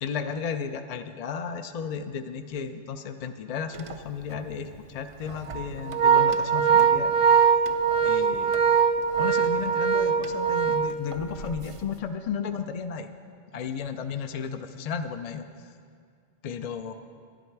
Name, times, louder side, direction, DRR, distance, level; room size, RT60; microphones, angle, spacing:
voice 1, 0.0-7.1 8.0-8.7 9.2-13.1 13.5-15.4 16.4-16.9, left 6 dB, 55° left, 8 dB, 0.4 m, -33 dB
Organ, 3.7-3.9 4.3-4.4 5.3-11.6, right 7 dB, 55° right, 0.3 m, -22 dB
12.0 x 10.5 x 4.6 m, 2.2 s
omnidirectional pair, 1.2 m